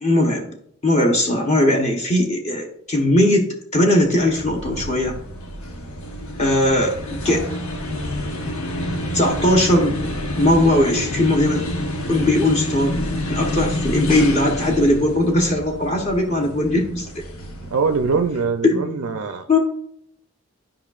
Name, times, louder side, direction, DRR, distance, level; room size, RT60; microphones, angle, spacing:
voice 1, 0.0-0.5 0.8-3.5 3.7-5.2 6.4-7.0 7.2-7.4 9.1-10.0 10.4-11.7 12.1-13.0 13.2-17.2 18.6-19.0 19.5-19.6, left 1 dB, 30° left, 1 dB, 0.9 m, -19 dB
sound 1, 4.0-18.5, left 1 dB, 75° left, 1.1 m, -28 dB
voice 2, 17.7-19.4, right 5 dB, 75° right, 6 dB, 0.5 m, -22 dB
10.5 x 5.4 x 2.4 m, 0.70 s
head